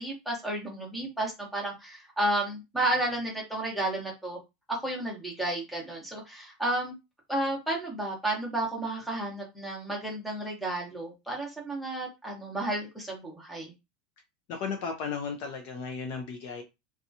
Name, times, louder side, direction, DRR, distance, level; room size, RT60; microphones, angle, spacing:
voice 1, 0.0-4.4 4.7-6.9 7.3-13.7, right 1 dB, ahead, 0.9 m, -32 dB
voice 2, 14.5-16.6, left 5 dB, 40° left, 0.5 m, -35 dB
2.8 x 2.3 x 2.6 m
supercardioid pair, 170°, 4 cm